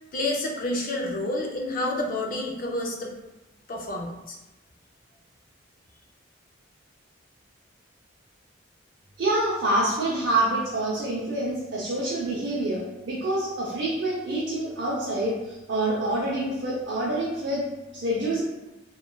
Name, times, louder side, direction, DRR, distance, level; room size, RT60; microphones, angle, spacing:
voice 1, 0.1-3.1 3.7-4.4, left 1 dB, 40° left, 0 dB, 0.4 m, -29 dB
voice 2, 9.2-17.6 17.9-18.4, right 1 dB, 60° right, -6 dB, 0.5 m, -27 dB
3.1 x 2.3 x 2.2 m, 1.0 s
head